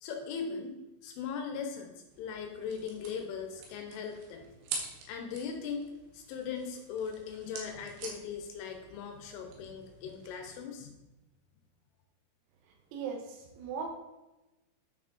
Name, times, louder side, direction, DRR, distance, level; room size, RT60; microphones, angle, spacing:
voice 1, 0.0-0.7 1.0-1.9 2.2-4.5 5.1-5.9 6.1-10.9, left 6 dB, 80° left, 4 dB, 3.2 m, -39 dB
sound 1, 2.1-10.5, right 4 dB, 70° right, 3.6 m, -46 dB
voice 2, 12.7-13.9, right 6 dB, 90° right, 2 dB, 4.1 m, -39 dB
9.7 x 6.1 x 4.2 m, 1.0 s
omnidirectional pair, 6.0 m